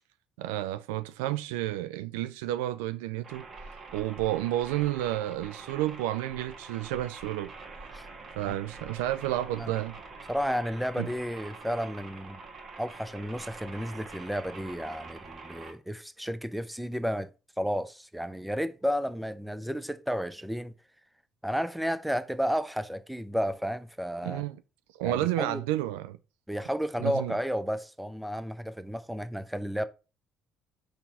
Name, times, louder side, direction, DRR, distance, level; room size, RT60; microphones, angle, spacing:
voice 1, 0.4-3.4 3.9-7.5 8.4-10.0 11.0-11.1 24.2-24.6 25.0-26.2 27.0-27.3, right 14 dB, 70° right, 0.3 m, -31 dB
sound 1, 3.2-15.7, right 3 dB, 40° right, 1.3 m, -45 dB
voice 2, 10.3-12.4 12.8-17.3 17.6-20.7 21.4-24.4 25.0-25.6 26.5-29.8, equal, ahead, 0.6 m, -32 dB
5.7 x 3.5 x 5.4 m
figure-of-eight pair, 50°, 0 cm